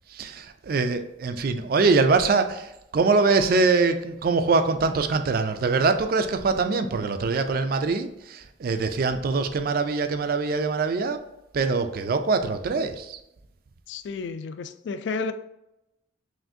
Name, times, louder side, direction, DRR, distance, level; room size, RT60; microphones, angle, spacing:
voice 1, 0.1-11.2 11.5-13.2, right 4 dB, 50° right, 0.3 m, -23 dB
voice 2, 13.9-15.3, left 4 dB, 65° left, 0.3 m, -31 dB
5.9 x 2.5 x 2.6 m
head